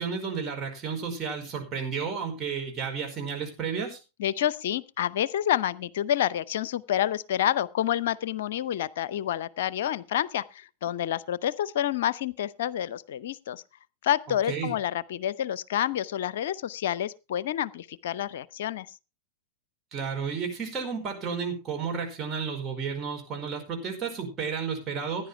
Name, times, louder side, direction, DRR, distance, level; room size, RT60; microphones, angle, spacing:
voice 1, 0.0-4.0 14.5-14.7 19.9-25.3, right 6 dB, 25° right, 4.8 m, -32 dB
voice 2, 4.2-13.6 14.0-18.9, left 11 dB, 55° left, 0.6 m, -28 dB
16.0 x 10.5 x 3.4 m
figure-of-eight pair, 90°, 0 cm